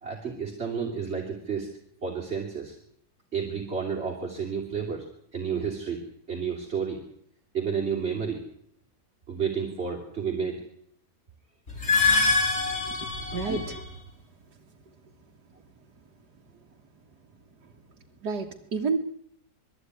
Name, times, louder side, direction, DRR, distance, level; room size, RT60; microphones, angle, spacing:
voice 1, 0.0-1.7 2.0-2.8 3.3-6.0 6.3-7.0 7.5-8.4 9.3-10.6 13.4-13.6, right 6 dB, 40° right, -1 dB, 3.3 m, -31 dB
sound 1, 11.7-13.9, left 3 dB, 45° left, 4.6 m, -25 dB
voice 2, 12.7-13.9 18.2-19.0, right 4 dB, 90° right, 0 dB, 2.1 m, -31 dB
21.5 x 14.5 x 9.6 m, 0.70 s
omnidirectional pair, 1.7 m